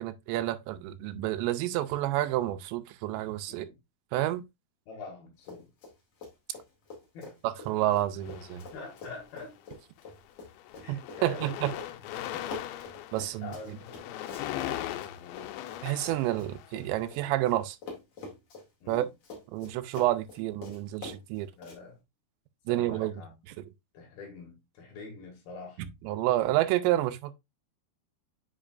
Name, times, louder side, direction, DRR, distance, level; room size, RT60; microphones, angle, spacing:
voice 1, 0.0-3.7 4.1-4.4 7.4-8.6 10.9-11.7 13.1-13.5 15.8-17.8 18.9-19.1 19.5-21.5 22.7-23.1 26.1-27.3, right 15 dB, 85° right, 2.8 m, -29 dB
voice 2, 4.9-5.7 7.1-7.4 8.7-9.6 10.7-12.0 12.3-12.6 13.2-14.8 18.8-19.1 21.5-22.0 22.7-23.4 23.9-25.8, left 3 dB, 60° left, 3.8 m, -46 dB
Run, 5.4-5.9 6.2-17.6 17.8-21.8, left 3 dB, 45° left, 3.1 m, -45 dB
sound 1, 8.2-9.2 10.0-10.2 10.5-17.0, left 13 dB, 90° left, 2.9 m, -39 dB
8.7 x 5.2 x 2.4 m
omnidirectional pair, 5.1 m